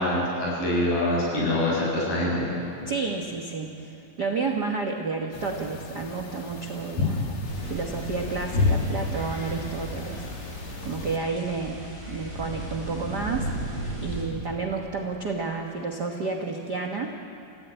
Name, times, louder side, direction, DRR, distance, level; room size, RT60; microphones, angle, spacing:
voice 1, 0.0-2.5 7.0-7.1 8.6-8.8 9.1-9.4, left 1 dB, 65° left, -5 dB, 9.7 m, -25 dB
voice 2, 2.9-3.9 4.2-7.4 7.6-10.2 10.8-13.5 14.0-17.2, right 4 dB, 65° right, 1 dB, 1.0 m, -31 dB
sound 1, 5.3-11.2, left 3 dB, 50° left, 2.0 m, -32 dB
sound 2, 7.4-14.2, right 1 dB, 15° left, 8.2 m, -36 dB
29.5 x 16.0 x 9.0 m, 2.6 s
omnidirectional pair, 4.2 m